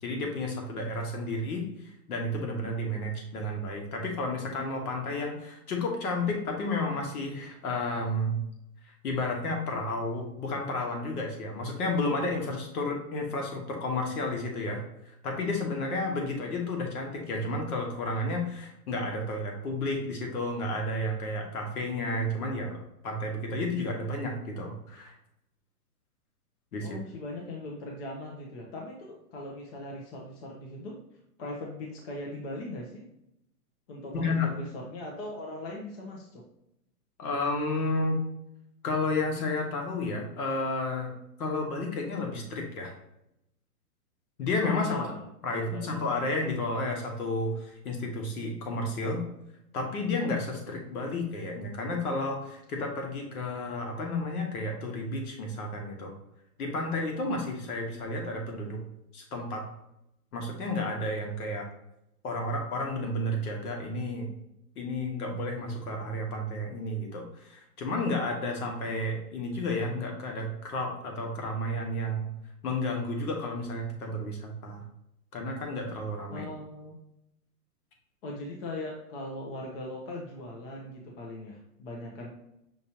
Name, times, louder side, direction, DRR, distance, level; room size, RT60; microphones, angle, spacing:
voice 1, 0.0-1.7 2.1-8.4 9.0-14.8 15.2-22.8 23.0-25.1 26.7-26.9 34.1-34.5 37.2-38.2 38.8-41.1 41.4-42.9 44.4-45.0 45.4-49.2 49.7-56.1 56.6-58.8 59.1-59.6 60.3-61.7 62.2-64.3 64.7-72.3 72.6-74.8 75.3-76.5, left 2 dB, 65° left, 1 dB, 1.4 m, -31 dB
voice 2, 26.8-31.0 31.4-33.0 33.9-36.4 44.8-46.2 76.3-77.0 78.2-82.3, left 1 dB, 35° left, -1 dB, 0.8 m, -40 dB
5.8 x 3.0 x 2.9 m, 0.82 s
hypercardioid pair, 150°, 48 cm